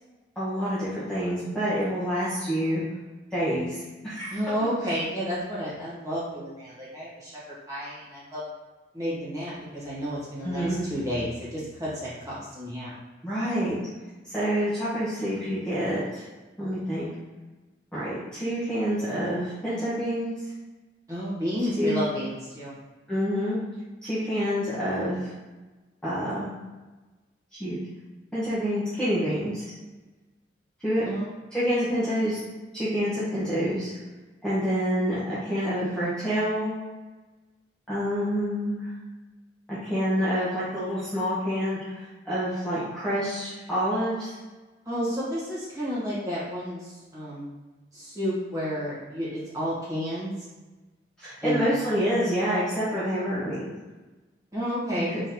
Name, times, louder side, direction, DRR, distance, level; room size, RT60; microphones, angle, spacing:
voice 1, 0.4-2.8 3.3-4.3 10.4-10.9 13.2-13.8 14.3-16.2 16.6-17.1 17.9-20.3 21.8-22.0 23.1-23.6 24.0-25.3 26.0-26.5 27.5-27.8 28.3-29.6 30.8-31.0 31.5-32.4 32.7-33.9 34.4-36.8 37.9-38.9 39.7-44.4 51.2-53.7 55.0-55.1, equal, 5° left, -12 dB, 0.9 m, -27 dB
voice 2, 4.3-8.4 8.9-12.9 21.1-22.7 31.0-31.3 44.8-47.5 47.9-49.3 49.5-50.3 51.4-51.6 54.5-55.2, equal, 20° right, -9 dB, 1.5 m, -31 dB
3.8 x 3.5 x 2.9 m, 1.2 s
head